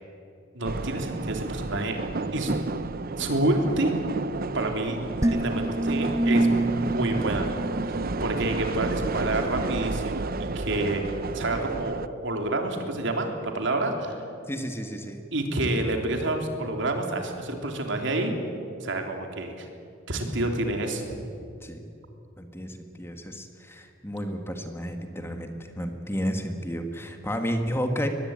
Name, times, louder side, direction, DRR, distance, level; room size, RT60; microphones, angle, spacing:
voice 1, 0.5-2.0 2.3-2.5 3.2-3.9 4.5-5.0 5.3-7.5 8.2-11.0 11.3-13.3 13.5-14.2 15.3-18.3 18.8-19.7 20.1-21.0, right 2 dB, 65° right, 4 dB, 3.4 m, -28 dB
sound 1, 0.6-12.1, right 3 dB, 45° right, 0.8 m, -31 dB
sound 2, 5.2-8.6, right 2 dB, 15° right, 0.6 m, -27 dB
voice 2, 14.5-15.2 21.6-21.8 22.4-28.1, equal, 10° left, 5 dB, 1.7 m, -32 dB
22.5 x 21.0 x 9.0 m, 2.6 s
head